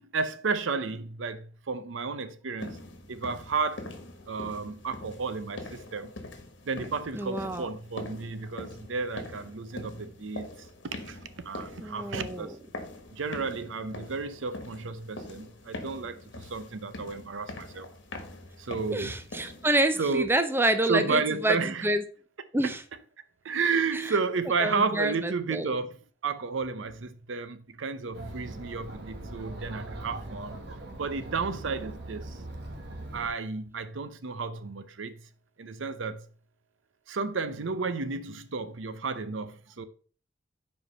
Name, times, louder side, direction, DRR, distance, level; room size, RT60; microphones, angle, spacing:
voice 1, 0.0-2.8 3.1-3.9 4.3-6.1 6.6-10.5 11.0-11.2 11.4-12.5 13.1-17.9 18.6-19.2 20.0-20.3 20.9-21.9 23.4-30.6 31.0-32.4 33.1-35.3 35.6-36.2 37.1-39.8, right 4 dB, 80° right, 0.6 m, -32 dB
sound 1, 2.6-19.9, left 2 dB, 70° left, 1.3 m, -43 dB
voice 2, 7.1-7.7 11.8-12.6 18.9-21.6 21.8-22.0 22.5-22.8 23.9-24.1 24.6-25.7, right 1 dB, 10° right, 0.5 m, -27 dB
Chatter, 28.1-33.3, right 2 dB, 60° right, 1.2 m, -41 dB
5.2 x 4.7 x 5.3 m
head